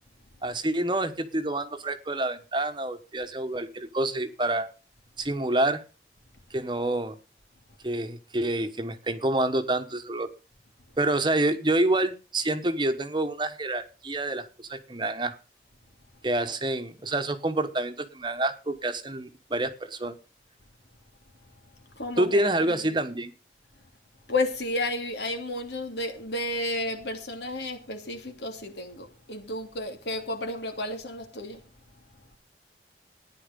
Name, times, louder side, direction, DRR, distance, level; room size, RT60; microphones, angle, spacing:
voice 1, 0.4-4.7 5.2-5.8 6.5-7.1 7.8-10.3 11.0-15.4 16.2-20.2 22.2-23.3, right 1 dB, 25° right, 1.1 m, -27 dB
voice 2, 21.9-22.8 24.3-31.6, left 2 dB, 80° left, 3.0 m, -32 dB
14.0 x 10.0 x 5.3 m
head